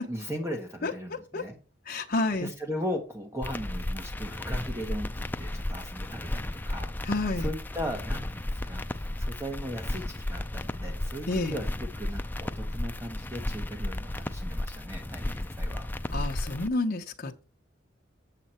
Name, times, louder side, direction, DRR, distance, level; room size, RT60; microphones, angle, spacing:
voice 1, 0.0-1.6 2.4-11.7 12.0-15.8, equal, 15° right, 1.1 m, -37 dB
voice 2, 0.8-1.4 1.9-2.5 7.0-7.5 11.3-11.6 16.1-17.4, left 2 dB, 50° left, 1.0 m, -30 dB
sound 1, 3.4-16.7, left 1 dB, 10° left, 0.4 m, -34 dB
7.9 x 7.4 x 4.4 m
head